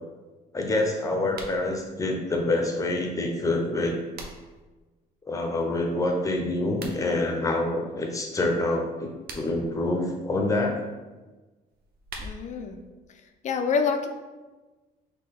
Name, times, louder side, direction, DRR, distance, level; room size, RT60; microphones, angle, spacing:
voice 1, 0.5-4.0 5.3-10.9, left 2 dB, 20° left, 2 dB, 0.8 m, -26 dB
sound 1, 1.2-1.6 3.6-4.6 6.6-7.0 9.0-9.7 11.7-12.6, right 2 dB, 65° right, 0.8 m, -42 dB
voice 2, 12.2-12.8 13.4-14.1, left 5 dB, 45° left, 5 dB, 0.5 m, -26 dB
4.3 x 3.0 x 4.1 m, 1.2 s
cardioid pair, 110°, 17 cm